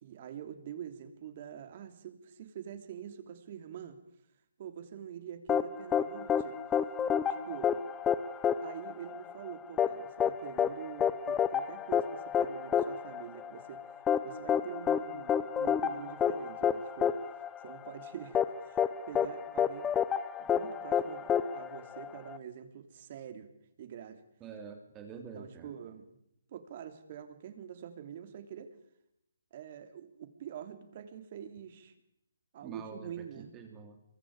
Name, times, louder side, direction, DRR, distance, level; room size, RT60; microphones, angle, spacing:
voice 1, 0.0-4.0 4.6-6.6 7.3-7.8 8.6-17.2 17.6-19.9 20.4-23.5 23.8-24.2 25.3-26.2 26.5-28.8 29.5-31.9 32.5-33.5, right 9 dB, 40° right, 9 dB, 3.2 m, -45 dB
sound 1, 5.5-22.4, left 8 dB, 10° left, 0.9 m, -30 dB
voice 2, 24.4-25.7 32.6-34.0, right 5 dB, 15° right, 4 dB, 2.9 m, -46 dB
26.5 x 23.5 x 5.0 m, 0.74 s
hypercardioid pair, 160°, 0 cm